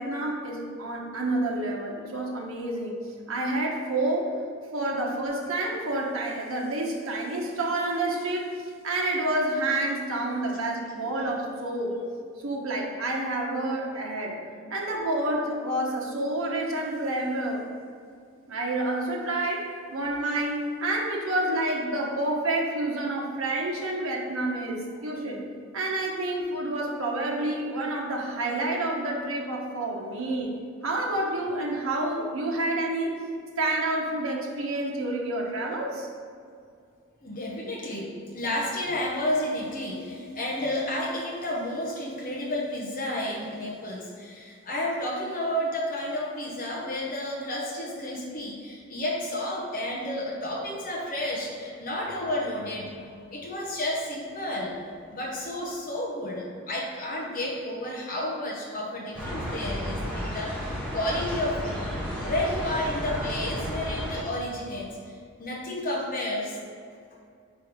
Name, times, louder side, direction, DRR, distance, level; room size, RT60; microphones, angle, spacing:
voice 1, 0.0-3.0 3.3-4.3 4.7-8.5 8.8-12.0 12.4-14.4 14.7-17.6 18.5-25.5 25.7-30.5 30.8-33.2 33.6-36.1, right 2 dB, 75° right, -2 dB, 1.1 m, -29 dB
voice 2, 37.2-54.8 55.1-61.8 62.2-66.6, left 1 dB, 40° left, -3 dB, 0.7 m, -31 dB
sound 1, 59.1-64.2, equal, 5° left, 1.2 m, -32 dB
5.1 x 4.5 x 5.2 m, 2.3 s
head